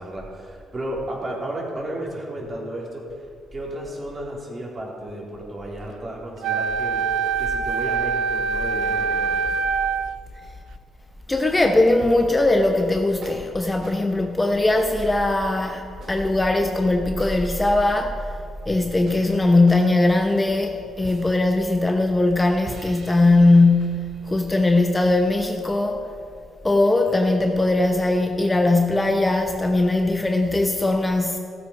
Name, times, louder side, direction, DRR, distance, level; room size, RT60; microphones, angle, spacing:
voice 1, 0.0-3.0 3.5-7.1 7.4-9.5, right 1 dB, 35° right, 3.5 m, -33 dB
Wind instrument woodwind instrument, 6.4-10.2, right 5 dB, 80° right, 0.4 m, -24 dB
voice 2, 11.3-18.3 18.7-26.0 26.6-31.4, left 2 dB, 15° left, 0.8 m, -20 dB
sound 1, 11.5-12.4 13.2-13.5 13.8-14.0 15.0-15.2 16.0-16.4 17.2-17.4 19.1-19.3 19.7-19.9 21.0-21.4 22.7-24.8, right 3 dB, 55° right, 2.4 m, -42 dB
15.0 x 8.3 x 5.3 m
cardioid pair, 90°, 0 cm